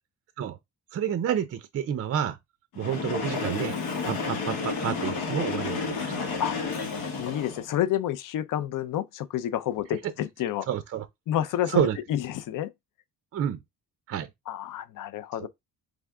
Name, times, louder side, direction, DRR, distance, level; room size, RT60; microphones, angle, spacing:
voice 1, 0.9-2.4 2.8-3.8 4.1-6.3 10.0-10.1 10.7-11.1 11.7-12.0 13.3-13.6 14.1-14.3 15.4-15.5, right 9 dB, 40° right, 0.4 m, -29 dB
Train, 2.7-7.8, left 4 dB, 90° left, 1.3 m, -31 dB
voice 2, 7.2-10.7 11.3-12.7 14.5-15.5, left 11 dB, 60° left, 0.5 m, -29 dB
3.5 x 3.4 x 3.6 m
cardioid pair, 170°, 37 cm